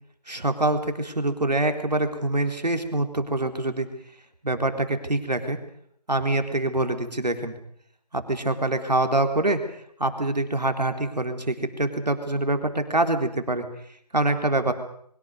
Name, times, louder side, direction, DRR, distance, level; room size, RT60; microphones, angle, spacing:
voice 1, 0.3-3.9 4.4-5.6 6.1-7.5 8.1-9.6 10.0-13.6 14.1-14.7, right 2 dB, 80° right, 7 dB, 3.7 m, -25 dB
23.0 x 23.0 x 6.6 m, 0.69 s
figure-of-eight pair, 155°, 21 cm